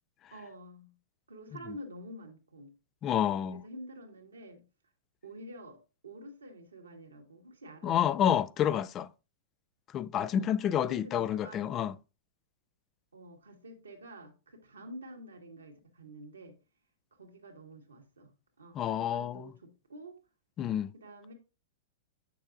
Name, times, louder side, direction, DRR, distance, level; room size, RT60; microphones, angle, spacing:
voice 1, 0.3-0.9 1.3-2.7 3.5-4.6 5.2-7.9 10.1-10.5 10.8-11.7 13.1-16.6 17.1-18.3 18.6-20.1 20.9-21.3, right 1 dB, 85° right, 1.7 m, -48 dB
voice 2, 3.0-3.6 7.8-9.1 9.9-11.9 18.8-19.5 20.6-20.9, left 10 dB, 30° left, 0.3 m, -29 dB
7.6 x 6.6 x 2.6 m
hypercardioid pair, 105°, 0 cm